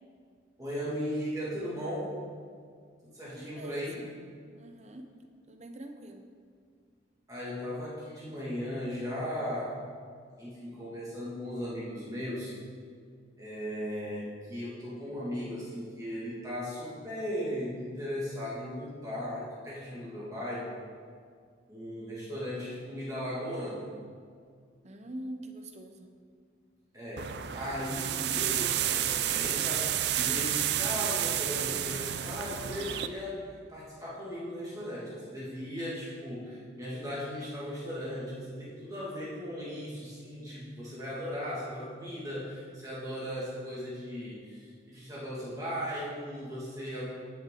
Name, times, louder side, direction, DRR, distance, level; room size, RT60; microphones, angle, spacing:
voice 1, 0.6-2.1 3.0-4.0 7.3-9.8 10.4-12.5 13.4-20.7 21.7-23.9 26.9-47.1, equal, 20° right, -7 dB, 1.9 m, -37 dB
voice 2, 3.3-4.2 4.5-5.1 5.5-6.2 24.8-26.1, right 1 dB, 35° right, 5 dB, 0.9 m, -44 dB
sound 1, 27.2-33.1, right 11 dB, 65° right, 0.4 m, -30 dB
16.0 x 6.9 x 3.8 m, 2.1 s
head